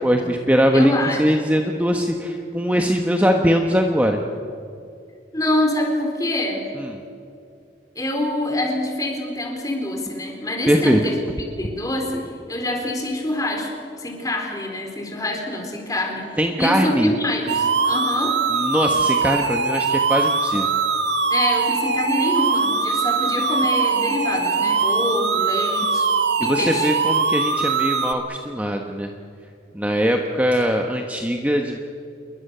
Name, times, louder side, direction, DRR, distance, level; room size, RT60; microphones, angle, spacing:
voice 1, 0.0-0.9 1.2-4.2 6.8-7.0 10.7-11.0 16.4-17.1 18.5-20.7 26.4-29.1 29.7-31.8, equal, 10° right, 2 dB, 1.2 m, -21 dB
voice 2, 0.7-1.2 5.3-6.7 8.0-13.7 14.0-16.3 16.6-18.4 21.3-26.1 26.4-26.9, left 1 dB, 20° left, 2 dB, 4.0 m, -25 dB
sound 1, 17.5-28.1, right 4 dB, 80° right, 1.9 m, -21 dB
28.5 x 22.0 x 6.9 m, 2.4 s
head